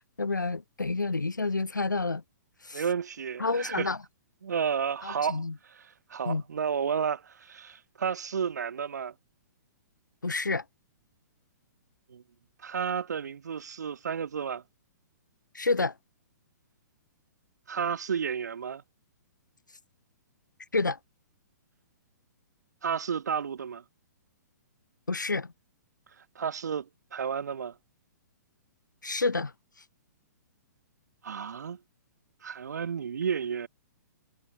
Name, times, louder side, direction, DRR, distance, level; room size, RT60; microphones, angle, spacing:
voice 1, 0.0-2.2 2.6-2.8 3.4-4.0 5.0-5.5 6.3-6.4 10.2-10.6 15.5-15.9 20.7-21.0 25.1-25.5 29.0-29.5, left 3 dB, 80° left, 2.2 m, -29 dB
voice 2, 2.7-3.9 4.4-5.4 5.8-5.9 6.1-9.1 12.1-12.2 12.6-14.6 17.7-18.8 22.8-23.8 26.3-27.8 31.2-31.8 32.4-33.7, right 7 dB, 65° right, 2.9 m, -32 dB
figure-of-eight pair, 120°, 10 cm